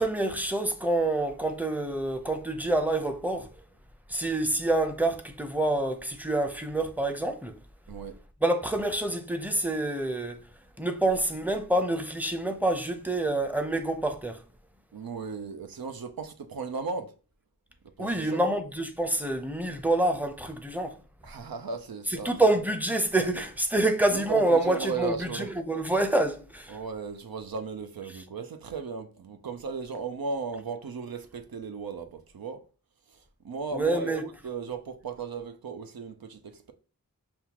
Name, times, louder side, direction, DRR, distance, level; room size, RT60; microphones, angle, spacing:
voice 1, 0.0-3.5 4.1-7.6 8.4-10.4 10.8-14.4 18.0-21.0 22.2-26.8 33.7-34.2, right 2 dB, 5° right, 0.6 m, -27 dB
voice 2, 7.9-8.2 14.9-17.1 18.0-18.4 21.2-22.3 24.1-25.5 26.7-32.6 33.1-36.7, right 5 dB, 85° right, 0.6 m, -36 dB
5.3 x 2.3 x 2.9 m
wide cardioid pair, 45°, 35 cm